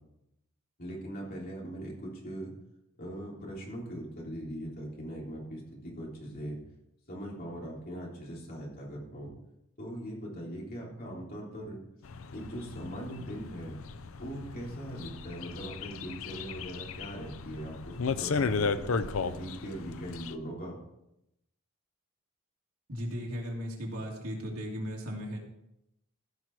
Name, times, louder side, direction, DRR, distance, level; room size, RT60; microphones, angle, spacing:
voice 1, 0.8-2.5 3.0-6.6 7.1-9.3 9.8-11.8 12.3-13.8 14.2-20.8, right 1 dB, 45° left, -3 dB, 3.4 m, -40 dB
sound 1, 12.1-20.3, left 4 dB, 65° left, 0.5 m, -35 dB
voice 2, 22.9-25.4, equal, 85° right, -1 dB, 2.8 m, -36 dB
15.5 x 6.0 x 4.7 m, 0.85 s
head